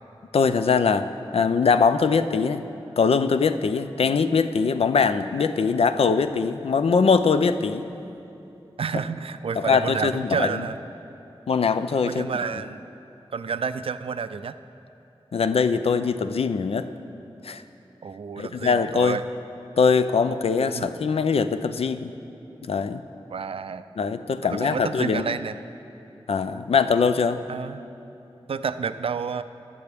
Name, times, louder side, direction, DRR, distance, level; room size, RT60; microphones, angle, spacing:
voice 1, 0.3-2.6 3.0-7.9 9.6-10.6 11.5-12.3 15.3-16.9 17.4-17.6 18.4-19.2 19.8-22.1 22.7-23.0 24.0-25.4 26.3-27.4, left 5 dB, 75° left, 10 dB, 0.4 m, -22 dB
voice 2, 8.8-10.8 12.0-12.9 13.3-14.6 18.0-19.2 20.7-20.9 23.3-23.8 24.5-25.5 27.5-27.8 28.5-29.4, right 6 dB, 70° right, 12 dB, 0.4 m, -30 dB
20.5 x 6.8 x 3.5 m, 2.9 s
wide cardioid pair, 80°, 10 cm